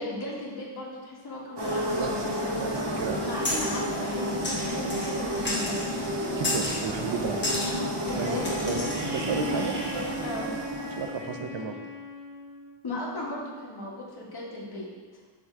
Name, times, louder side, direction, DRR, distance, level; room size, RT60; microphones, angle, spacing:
voice 1, 0.0-2.6 2.8-5.8 8.0-9.0 9.2-9.3 10.2-10.5 12.8-14.9, left 1 dB, 60° left, -5 dB, 1.7 m, -36 dB
sound 1, 1.6-11.4, equal, 65° right, 1.4 m, -31 dB
voice 2, 1.9-2.2 2.6-3.6 6.3-7.6 8.1-8.4 8.6-9.7 10.9-11.8, right 5 dB, 85° right, 5 dB, 0.8 m, -33 dB
sound 2, 3.4-3.8 4.4-5.1 5.4-5.9 6.4-6.9 7.4-7.7 8.4-9.0, left 1 dB, 25° left, 1.5 m, -31 dB
Wind instrument woodwind instrument, 8.4-12.8, left 1 dB, ahead, 1.5 m, -39 dB
7.0 x 3.4 x 6.1 m, 1.5 s
wide cardioid pair, 130°, 44 cm